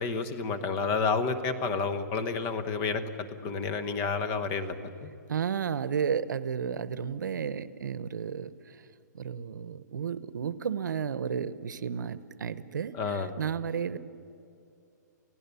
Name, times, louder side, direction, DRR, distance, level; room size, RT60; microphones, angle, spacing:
voice 1, 0.0-5.1 12.9-13.3, left 4 dB, 25° left, 9 dB, 1.1 m, -30 dB
voice 2, 5.3-8.8 9.1-14.0, right 7 dB, 80° right, 16 dB, 0.9 m, -33 dB
28.5 x 16.0 x 7.0 m, 2.6 s
hypercardioid pair, 165°, 10 cm